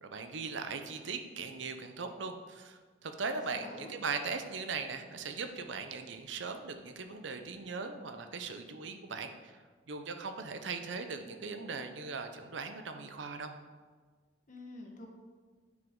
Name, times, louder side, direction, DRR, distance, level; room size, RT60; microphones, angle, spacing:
voice 1, 0.0-13.5, right 4 dB, 75° right, 7 dB, 0.6 m, -39 dB
voice 2, 3.3-3.9 14.5-15.1, left 1 dB, 45° left, 1 dB, 1.1 m, -48 dB
9.2 x 4.9 x 3.8 m, 1.4 s
head